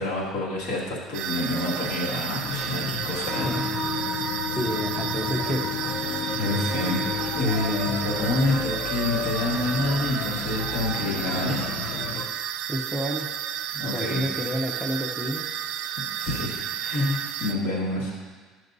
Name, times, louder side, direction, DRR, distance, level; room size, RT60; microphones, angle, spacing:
voice 1, 0.0-3.6 6.3-7.0 7.3-11.7 13.7-14.2 16.2-18.1, left 2 dB, 75° left, -5 dB, 2.1 m, -28 dB
sound 1, 1.1-17.5, right 9 dB, 70° right, 0.4 m, -32 dB
sound 2, 2.4-12.3, left 5 dB, 50° left, 0.6 m, -33 dB
Wind instrument woodwind instrument, 3.2-8.4, left 4 dB, 20° right, 1.5 m, -32 dB
voice 2, 4.5-5.6 12.7-13.3 13.8-15.5 17.0-17.1, equal, ahead, 1 dB, 0.7 m, -29 dB
12.0 x 6.1 x 2.7 m, 1.4 s
cardioid pair, 115°, 0 cm